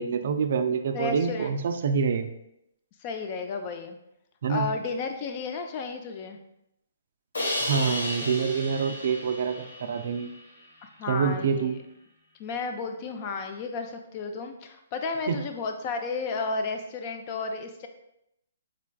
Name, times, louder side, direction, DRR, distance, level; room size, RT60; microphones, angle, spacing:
voice 1, 0.0-2.3 4.4-4.7 7.6-10.3 11.1-11.8 15.3-15.4, right 6 dB, 60° right, 8 dB, 0.3 m, -26 dB
voice 2, 0.9-1.5 3.0-4.0 4.5-6.4 10.8-11.7 12.4-17.9, left 4 dB, 35° left, 5 dB, 0.4 m, -33 dB
Crash cymbal, 7.3-10.4, left 1 dB, 80° left, 1.1 m, -33 dB
3.9 x 3.2 x 2.3 m, 0.81 s
hypercardioid pair, 135°, 0 cm